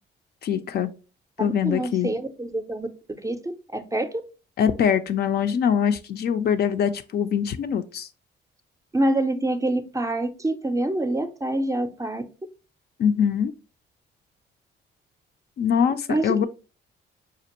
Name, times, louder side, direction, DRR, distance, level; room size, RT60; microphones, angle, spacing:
voice 1, 0.4-0.9 1.4-2.1 4.6-8.1 13.0-13.5 15.6-16.5, left 8 dB, 55° left, 0.4 m, -23 dB
voice 2, 1.4-3.4 3.7-4.1 8.9-12.2 16.1-16.5, right 1 dB, 15° right, 0.4 m, -26 dB
5.0 x 2.5 x 2.8 m
cardioid pair, 90°, 20 cm